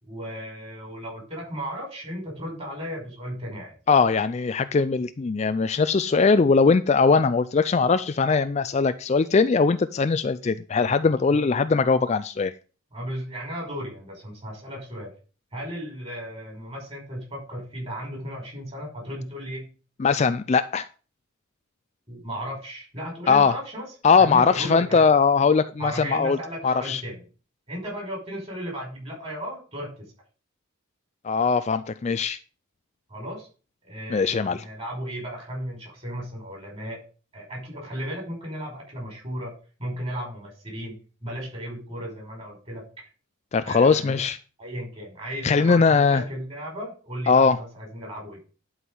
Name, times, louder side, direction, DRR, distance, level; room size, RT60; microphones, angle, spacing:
voice 1, 0.0-3.7 11.3-11.4 12.9-15.1 15.5-19.7 22.1-23.9 24.2-25.0 25.8-27.2 27.7-29.9 33.1-33.5 33.8-37.0 37.3-39.5 39.8-40.9 41.2-42.8 43.6-44.2 44.6-48.4, equal, 30° right, -1 dB, 5.4 m, -35 dB
voice 2, 3.9-12.5 20.0-20.9 23.3-23.5 24.0-26.4 26.6-27.0 31.2-32.4 34.1-34.6 43.5-44.4 45.4-46.2 47.3-47.6, left 5 dB, 30° left, 13 dB, 0.3 m, -20 dB
11.0 x 4.8 x 5.4 m, 0.36 s
head